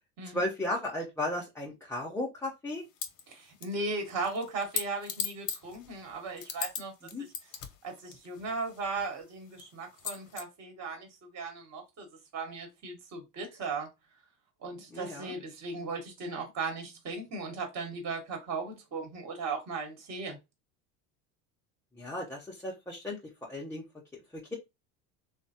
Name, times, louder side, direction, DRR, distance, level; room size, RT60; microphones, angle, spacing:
voice 1, 0.3-2.8 7.1-7.3 14.9-15.3 22.0-23.2 23.5-23.8, left 1 dB, 5° left, 0.6 m, -35 dB
sound 1, 3.0-3.2 3.6-6.8 7.1-9.0 9.6-9.7 10.0-10.4, left 8 dB, 45° left, 0.8 m, -37 dB
voice 2, 3.3-6.9 7.8-12.1 12.3-13.9 14.6-20.4, right 3 dB, 35° right, 1.3 m, -37 dB
3.2 x 2.2 x 2.7 m
supercardioid pair, 95°, 46 cm